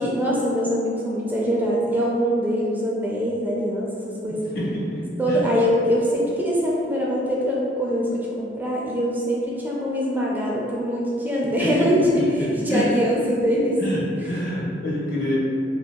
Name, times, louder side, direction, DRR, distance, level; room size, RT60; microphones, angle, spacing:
voice 1, 0.0-4.4 5.2-13.8 14.2-14.4, equal, 10° right, -5 dB, 0.3 m, -23 dB
voice 2, 4.5-5.0 5.3-5.4 11.6-11.7 12.7-12.8 13.8-15.4, equal, 55° left, -6 dB, 0.8 m, -26 dB
2.7 x 2.2 x 3.5 m, 2.4 s
head